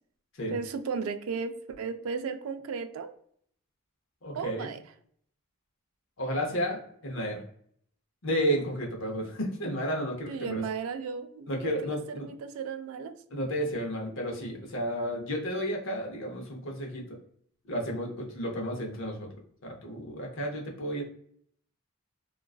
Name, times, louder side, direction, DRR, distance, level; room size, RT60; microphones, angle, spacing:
voice 1, 0.5-3.1 4.3-4.8 10.3-13.2, right 5 dB, 80° right, 8 dB, 0.3 m, -35 dB
voice 2, 4.2-4.7 6.2-7.4 8.2-10.6 11.5-12.3 13.3-17.2 17.7-19.3 19.6-21.0, equal, 65° left, 0 dB, 0.7 m, -32 dB
2.3 x 2.3 x 2.3 m, 0.64 s
head